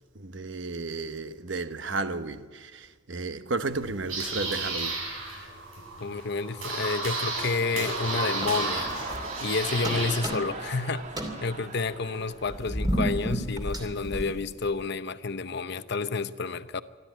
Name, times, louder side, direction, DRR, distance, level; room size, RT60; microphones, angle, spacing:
voice 1, 0.1-5.0, right 3 dB, 60° right, 1.0 m, -33 dB
sound 1, 3.7-10.2, right 3 dB, 90° right, 7.8 m, -33 dB
voice 2, 6.0-8.9 9.4-11.0 11.4-16.8, left 4 dB, 55° left, 0.8 m, -30 dB
sound 2, 6.8-13.3 13.8-13.9, right 3 dB, 35° right, 1.8 m, -40 dB
sound 3, 8.4-9.5 9.8-10.7 11.0-14.8, right 1 dB, 20° right, 2.7 m, -33 dB
26.5 x 12.5 x 9.2 m
head